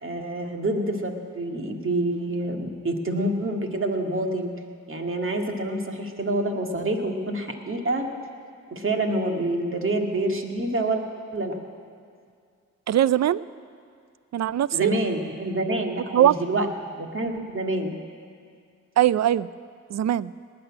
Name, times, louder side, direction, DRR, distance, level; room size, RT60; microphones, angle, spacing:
voice 1, 0.0-4.5 4.9-8.1 8.7-11.0 11.3-11.6 14.7-16.7 17.0-18.0, right 1 dB, 40° right, 3 dB, 2.0 m, -27 dB
voice 2, 12.9-13.4 14.3-14.9 16.1-16.7 19.0-19.5 19.9-20.3, right 11 dB, 55° right, 19 dB, 0.5 m, -21 dB
18.5 x 6.9 x 9.8 m, 2.2 s
cardioid pair, 60°, 32 cm